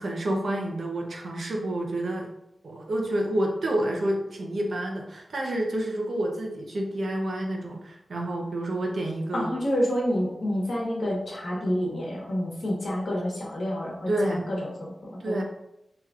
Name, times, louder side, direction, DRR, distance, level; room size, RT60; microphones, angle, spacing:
voice 1, 0.0-2.3 2.6-9.5 14.1-14.5 15.2-15.4, right 1 dB, 60° right, 1 dB, 0.7 m, -29 dB
voice 2, 9.3-15.4, equal, 65° left, -3 dB, 1.1 m, -28 dB
4.8 x 3.0 x 2.4 m, 0.85 s
wide cardioid pair, 135°, 0 cm